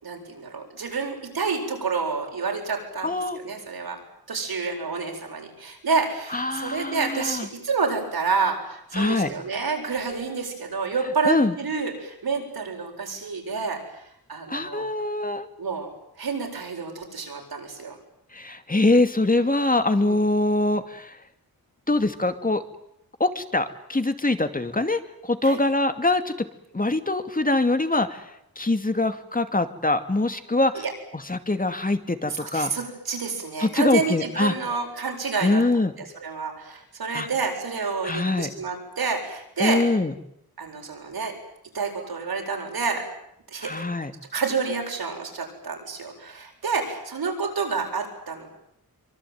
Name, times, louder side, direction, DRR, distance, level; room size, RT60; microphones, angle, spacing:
voice 1, 0.0-4.0 4.3-13.8 14.3-14.9 15.6-15.9 16.2-17.9 20.0-20.2 25.4-25.6 30.7-30.9 32.3-35.6 36.2-39.8 40.6-41.3 41.7-43.0 43.5-43.7 44.3-48.5, right 4 dB, 75° right, 2 dB, 8.0 m, -29 dB
voice 2, 3.0-3.4 6.3-7.5 8.9-9.3 11.2-11.5 14.5-15.5 18.3-21.2 21.9-22.6 23.2-26.3 26.7-30.8 31.1-32.7 33.6-34.6 35.4-35.9 37.1-37.3 38.0-38.5 39.6-40.1 43.6-44.1, left 2 dB, 20° left, 9 dB, 2.5 m, -23 dB
24.5 x 24.5 x 9.6 m, 0.77 s
wide cardioid pair, 90°, 37 cm